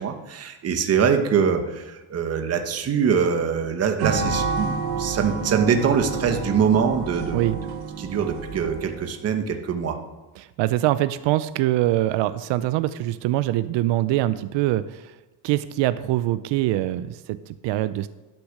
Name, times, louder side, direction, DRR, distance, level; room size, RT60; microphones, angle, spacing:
voice 1, 0.0-7.4 8.0-10.0, right 7 dB, 35° right, 6 dB, 1.1 m, -23 dB
sound 1, 4.0-9.1, right 5 dB, 65° right, 1.2 m, -29 dB
voice 2, 10.4-15.2 15.4-18.1, right 15 dB, 85° right, 14 dB, 0.6 m, -24 dB
12.0 x 6.3 x 6.5 m, 1.2 s
cardioid pair, 175°, 42 cm